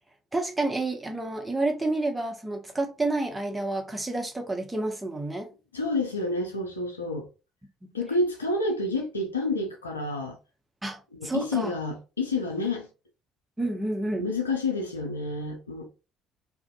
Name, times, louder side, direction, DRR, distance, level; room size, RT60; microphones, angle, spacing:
voice 1, 0.3-5.5 7.8-7.9 10.8-11.7 13.6-14.3, right 2 dB, 15° right, 0.7 m, -29 dB
voice 2, 5.7-7.3 7.9-10.4 11.2-12.9 14.2-15.9, left 2 dB, 85° left, 0.5 m, -29 dB
2.5 x 2.4 x 2.2 m
figure-of-eight pair, 50°, 0 cm